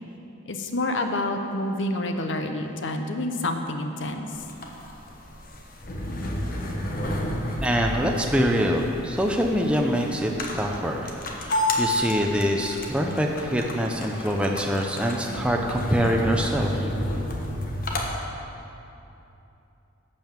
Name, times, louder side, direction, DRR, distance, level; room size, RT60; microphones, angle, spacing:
voice 1, 0.5-4.3, left 1 dB, 60° left, 5 dB, 0.8 m, -28 dB
sound 1, 4.3-18.1, left 1 dB, 45° left, 1.1 m, -31 dB
voice 2, 7.6-16.9, equal, 5° right, 1 dB, 0.6 m, -25 dB
11.5 x 5.4 x 7.3 m, 2.9 s
head